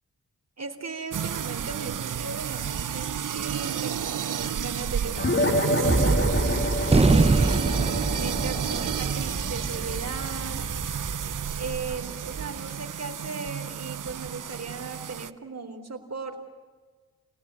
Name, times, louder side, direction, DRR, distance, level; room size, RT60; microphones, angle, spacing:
voice 1, 0.6-6.7 7.0-7.8 8.2-10.7 11.6-16.4, right 4 dB, 50° right, 6 dB, 4.0 m, -37 dB
sound 1, 1.1-15.3, right 9 dB, 65° right, 0.9 m, -32 dB
sound 2, 5.2-10.0, left 1 dB, 35° left, 3.3 m, -28 dB
Gunshot gunfire, 5.8-12.4, right 3 dB, 20° right, 0.7 m, -25 dB
28.0 x 18.5 x 9.7 m, 1.4 s
cardioid pair, 45°, 34 cm